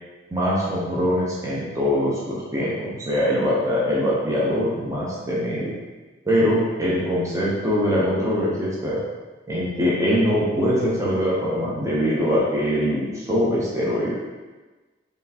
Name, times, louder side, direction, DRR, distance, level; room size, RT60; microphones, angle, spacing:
voice 1, 0.3-5.8 6.2-9.0 9.5-14.1, equal, 15° right, -6 dB, 0.6 m, -23 dB
4.2 x 3.2 x 2.8 m, 1.3 s
head